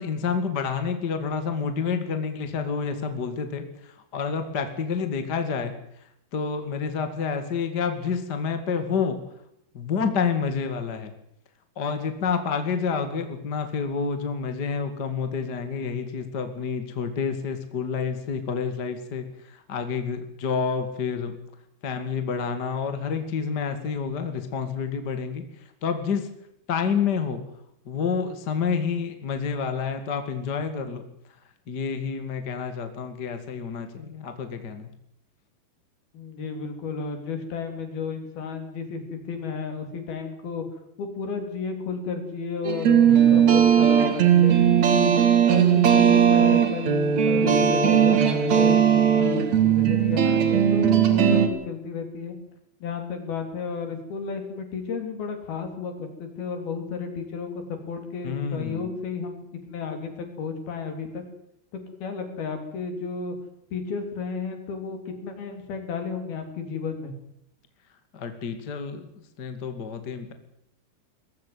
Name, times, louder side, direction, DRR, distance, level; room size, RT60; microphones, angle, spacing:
voice 1, 0.0-5.7 6.3-9.2 9.7-11.1 11.7-21.4 21.8-25.4 25.8-26.3 26.7-27.4 27.8-31.0 31.7-34.9 43.1-43.6 58.2-58.9 68.1-69.1 69.4-70.3, left 6 dB, 35° left, 8 dB, 1.6 m, -29 dB
voice 2, 36.1-40.6 41.0-45.1 45.5-52.4 52.8-61.2 62.0-63.3 63.7-67.1, left 5 dB, 55° left, 6 dB, 5.0 m, -32 dB
sound 1, 42.7-51.5, right 8 dB, 50° right, 2.7 m, -18 dB
20.5 x 15.5 x 9.5 m, 0.74 s
omnidirectional pair, 5.3 m